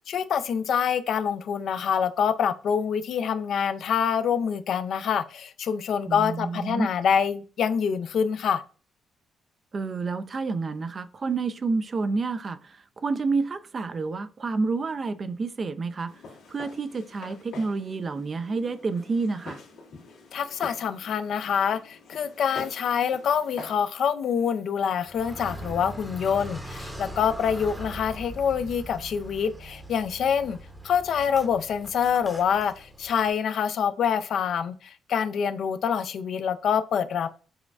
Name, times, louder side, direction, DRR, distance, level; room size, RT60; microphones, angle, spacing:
voice 1, 0.1-8.6 20.3-30.6 30.8-37.3, left 7 dB, 65° left, 0.4 m, -26 dB
voice 2, 6.1-6.9 9.7-16.1 16.5-19.6, right 4 dB, 40° right, 0.3 m, -29 dB
Walk footsteps, 16.1-23.9, left 3 dB, 85° left, 1.6 m, -45 dB
Car, 25.0-33.3, right 1 dB, 10° right, 0.7 m, -41 dB
6.1 x 2.2 x 2.3 m
cardioid pair, 90°, 0 cm